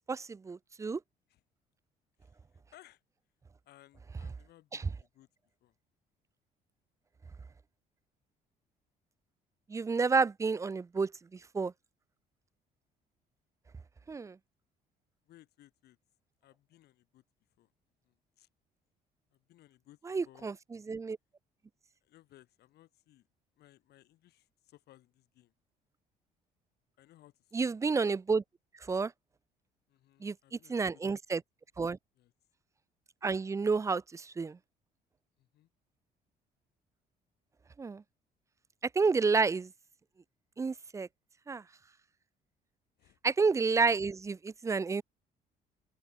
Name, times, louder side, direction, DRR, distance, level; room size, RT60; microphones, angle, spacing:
voice 1, 0.1-1.0 9.7-11.1 11.5-11.7 14.1-14.3 20.1-20.5 20.9-21.2 27.5-28.4 28.9-29.1 30.2-30.3 30.7-31.4 31.8-32.0 33.2-34.6 37.8-38.0 39.0-39.7 40.6-41.1 41.5-41.6 43.2-45.0, right 4 dB, 20° right, 0.4 m, -30 dB
voice 2, 2.2-3.0 3.6-5.3 5.6-5.7 15.3-16.0 16.4-17.2 17.6-17.7 18.0-18.5 19.3-20.5 22.0-23.3 23.6-25.5 27.0-27.8 29.9-31.0 31.3-31.4 32.1-32.3 35.4-35.7 43.0-43.2, left 14 dB, 75° left, 7.9 m, -62 dB
open air
cardioid pair, 110°, 17 cm